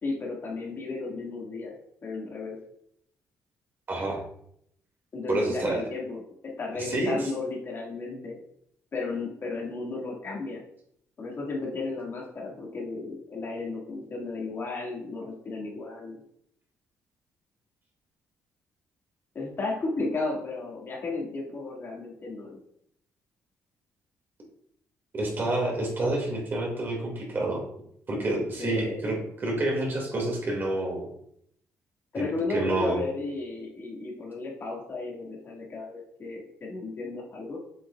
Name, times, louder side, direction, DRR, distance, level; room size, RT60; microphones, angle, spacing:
voice 1, 0.0-1.8 2.0-2.6 5.1-8.4 8.9-10.6 11.2-16.2 19.3-22.6 28.6-29.0 32.1-37.6, left 3 dB, 45° left, -2 dB, 1.9 m, -34 dB
voice 2, 3.9-4.2 5.3-5.8 6.8-7.2 25.1-27.6 28.1-31.1 32.1-33.0, right 1 dB, 40° right, -1 dB, 2.2 m, -28 dB
7.6 x 6.2 x 2.4 m, 0.71 s
cardioid pair, 105°, 6 cm